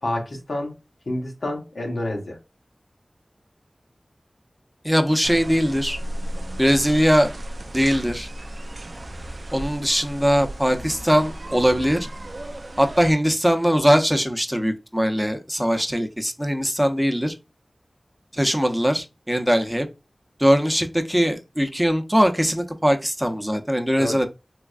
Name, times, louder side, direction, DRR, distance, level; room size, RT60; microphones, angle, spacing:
voice 1, 0.0-0.7 1.1-2.4 24.0-24.2, left 1 dB, 90° left, 0.9 m, -28 dB
voice 2, 4.8-6.0 6.6-7.3 7.7-8.3 9.5-12.1 12.8-17.3 18.3-19.9 20.4-24.3, equal, 5° right, 0.6 m, -21 dB
sound 1, 5.2-13.1, right 1 dB, 65° right, 0.4 m, -35 dB
3.5 x 3.1 x 2.4 m
wide cardioid pair, 40°, 0 cm